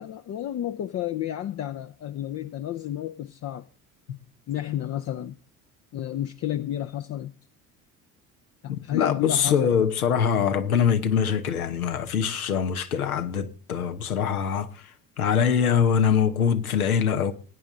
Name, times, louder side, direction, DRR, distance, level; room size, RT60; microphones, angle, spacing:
voice 1, 0.0-3.7 4.5-5.4 5.9-7.3 8.6-9.8, left 12 dB, 35° left, 0.7 m, -31 dB
voice 2, 8.7-14.7 15.2-17.3, left 7 dB, 75° left, 1.1 m, -23 dB
20.0 x 9.3 x 3.8 m
figure-of-eight pair, 55°, 43 cm